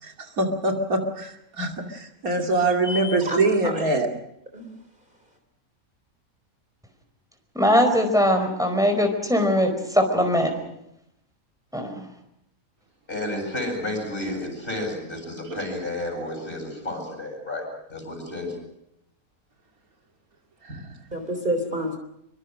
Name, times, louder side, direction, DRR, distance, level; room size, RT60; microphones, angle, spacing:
voice 1, 0.0-4.1 15.5-15.6 20.6-20.9, right 2 dB, 75° right, 3.1 m, -24 dB
voice 2, 2.8-3.8 4.5-4.7 21.1-22.0, equal, 35° right, 3.5 m, -29 dB
voice 3, 7.5-10.5 11.7-12.1, equal, ahead, 4.8 m, -21 dB
voice 4, 13.1-18.5, left 1 dB, 40° left, 8.4 m, -31 dB
25.5 x 24.0 x 6.4 m
omnidirectional pair, 1.5 m